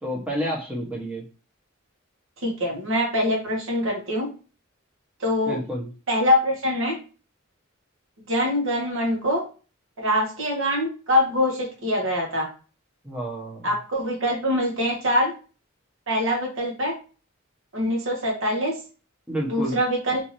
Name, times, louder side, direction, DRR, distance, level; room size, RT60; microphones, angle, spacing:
voice 1, 0.0-1.2 5.5-5.9 13.0-13.7 19.3-19.8, equal, 5° right, -3 dB, 0.8 m, -29 dB
voice 2, 2.4-4.3 5.2-5.6 6.1-6.9 8.3-9.4 10.0-12.5 13.6-15.3 16.1-16.9 17.7-18.7 19.5-20.2, left 1 dB, 70° right, -1 dB, 1.0 m, -24 dB
2.7 x 2.6 x 2.9 m, 0.36 s
head